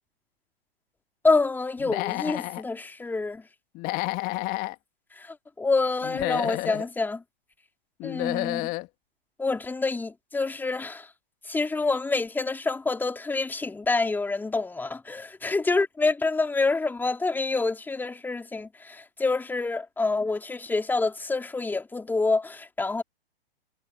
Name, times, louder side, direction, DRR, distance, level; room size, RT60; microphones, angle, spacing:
voice 1, 1.2-3.4 5.2-7.2 8.0-8.7 9.4-11.1 11.5-23.0, left 3 dB, 5° left, 3.0 m, -27 dB
Human voice / Animal, 1.8-2.6 3.8-4.7 6.0-6.9 8.0-8.9, left 21 dB, 30° left, 2.3 m, -30 dB
figure-of-eight pair, 115°, 30 cm